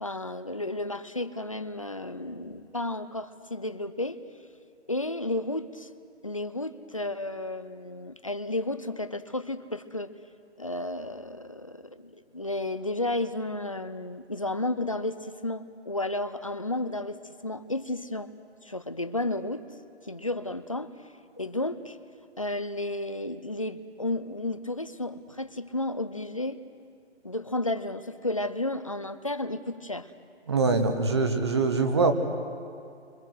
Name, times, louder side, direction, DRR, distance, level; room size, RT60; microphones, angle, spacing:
voice 1, 0.0-4.2 4.9-5.9 6.2-10.1 10.6-17.2 17.4-18.3 18.6-19.6 20.0-20.9 21.4-22.0 22.4-26.6 27.2-30.1, left 2 dB, 30° left, 12 dB, 0.5 m, -32 dB
voice 2, 30.5-32.1, right 3 dB, 25° right, 6 dB, 1.1 m, -23 dB
26.0 x 25.5 x 6.4 m, 2.3 s
hypercardioid pair, 170°, 35 cm